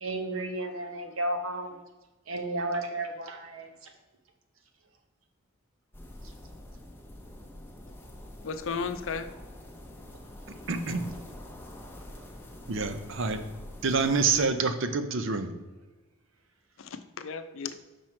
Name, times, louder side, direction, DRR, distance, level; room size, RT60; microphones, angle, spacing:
voice 1, 0.0-1.8 2.3-3.9, right 1 dB, 80° right, 5 dB, 1.0 m, -33 dB
sound 1, 5.9-14.5, left 1 dB, 10° left, 0.8 m, -46 dB
voice 2, 8.4-9.3 16.8-17.7, left 5 dB, 65° left, 10 dB, 0.5 m, -34 dB
voice 3, 10.7-11.1 12.7-13.4 13.8-15.5, right 4 dB, 60° right, 9 dB, 0.6 m, -27 dB
6.1 x 5.3 x 4.4 m, 1.2 s
head